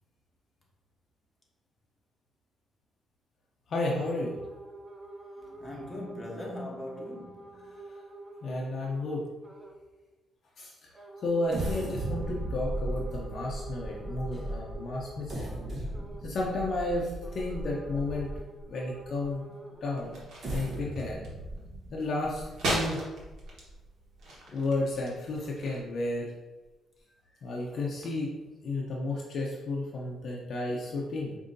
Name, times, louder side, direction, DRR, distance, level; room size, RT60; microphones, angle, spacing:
voice 1, 3.7-4.4 5.6-5.8 8.4-9.3 10.6-10.7 11.2-15.6 16.2-18.3 18.7-19.4 19.8-20.2 20.5-21.3 21.9-23.0 24.5-26.3 27.4-28.3 28.6-31.4, left 2 dB, 55° left, 0.6 m, -32 dB
sound 1, 4.0-9.1 9.4-9.8 10.9-16.3 17.2-19.9, right 2 dB, 20° right, 0.5 m, -47 dB
voice 2, 5.6-7.7 14.3-14.5 27.3-27.4, left 1 dB, 20° left, 1.0 m, -41 dB
sound 2, 11.5-18.6 19.2-19.3 20.2-23.7 24.2-24.3 24.7-24.9, right 1 dB, 45° right, 1.0 m, -37 dB
sound 3, 19.9-25.8, right 1 dB, 70° right, 1.1 m, -38 dB
4.9 x 2.7 x 2.6 m
cardioid pair, 90°, 0 cm